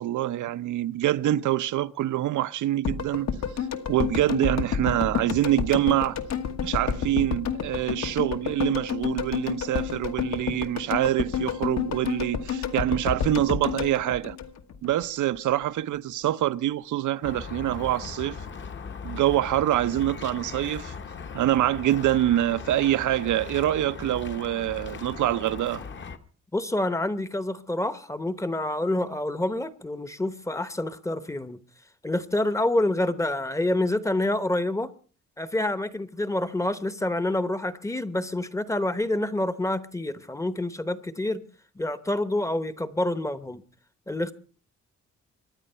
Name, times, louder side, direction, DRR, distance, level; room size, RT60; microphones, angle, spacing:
voice 1, 0.0-3.3 3.9-6.2 6.6-14.4 14.8-18.4 19.0-20.9 21.3-25.8, right 13 dB, 85° right, 0.7 m, -25 dB
sound 1, 2.9-15.0 15.3-15.4, left 7 dB, 65° left, 1.4 m, -30 dB
sound 2, 17.2-26.2, left 5 dB, 40° left, 1.1 m, -39 dB
voice 2, 26.5-31.6 32.0-34.9 35.4-41.4 41.8-43.6 44.1-44.3, left 1 dB, 10° left, 0.8 m, -27 dB
25.0 x 10.0 x 5.5 m
wide cardioid pair, 155°, 29 cm